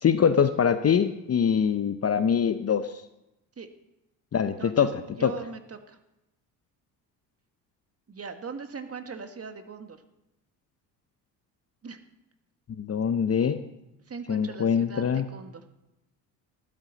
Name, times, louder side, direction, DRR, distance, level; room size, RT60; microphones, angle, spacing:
voice 1, 0.0-3.0 4.3-5.3 12.7-13.6 14.3-15.3, left 7 dB, 30° left, 11 dB, 0.8 m, -24 dB
voice 2, 4.6-6.0 8.1-10.0 11.8-12.0 14.1-15.6, right 5 dB, 30° right, 7 dB, 1.7 m, -40 dB
15.5 x 12.0 x 4.1 m, 0.91 s
hypercardioid pair, 60°, 50 cm